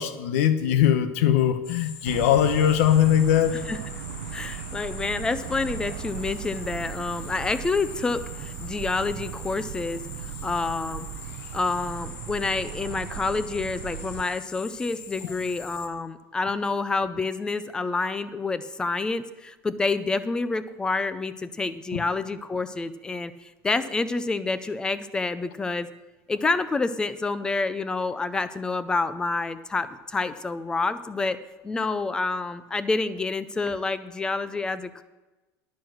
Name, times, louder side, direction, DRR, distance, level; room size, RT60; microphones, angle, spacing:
voice 1, 0.0-3.6 15.2-15.3 21.9-22.0, left 10 dB, 80° left, 11 dB, 1.0 m, -21 dB
sound 1, 1.6-15.9, left 7 dB, 60° left, 1.6 m, -43 dB
sound 2, 2.1-14.3, right 11 dB, 80° right, 0.6 m, -37 dB
voice 2, 4.3-10.0 10.4-11.1 11.5-25.9 26.3-35.0, left 3 dB, 10° left, 14 dB, 0.4 m, -28 dB
10.5 x 9.2 x 6.4 m, 1.1 s
cardioid pair, 170°, 8 cm